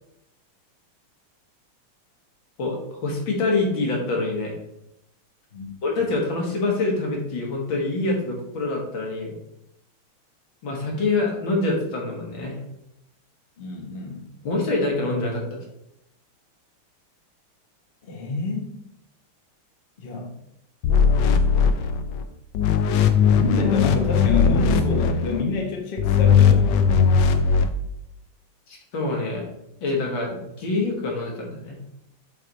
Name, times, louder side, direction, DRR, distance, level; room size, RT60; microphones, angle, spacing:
voice 1, 2.6-4.5 5.8-9.3 10.6-12.6 14.4-15.6 28.7-29.5 29.8-31.8, left 2 dB, 65° left, -1 dB, 2.1 m, -25 dB
voice 2, 13.6-14.2 18.0-18.7 20.0-20.3 23.2-26.7, left 4 dB, 40° left, 0 dB, 0.8 m, -27 dB
sound 1, 20.8-22.2 22.5-25.4 26.0-27.7, left 6 dB, 85° left, 0.9 m, -18 dB
7.5 x 3.3 x 4.0 m, 0.81 s
omnidirectional pair, 2.4 m